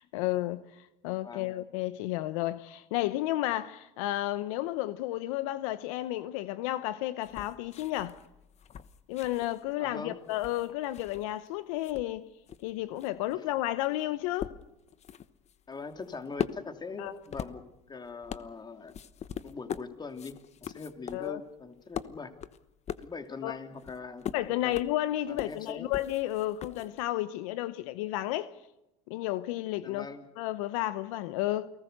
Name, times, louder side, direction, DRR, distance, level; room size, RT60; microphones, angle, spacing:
voice 1, 0.0-8.2 9.1-12.3 12.6-14.5 17.0-17.1 21.1-21.4 23.4-23.6 24.3-28.5 29.1-30.1 30.4-31.7, left 15 dB, 75° left, 0.8 m, -32 dB
sound 1, 7.2-11.5 11.7-27.1, left 9 dB, 40° left, 1.2 m, -42 dB
voice 2, 9.8-10.2 15.7-17.6 17.9-18.9 19.4-22.3 23.0-24.7 25.3-25.9 29.8-30.3, left 4 dB, 25° left, 2.9 m, -42 dB
29.0 x 19.0 x 6.7 m
supercardioid pair, 85°, 17 cm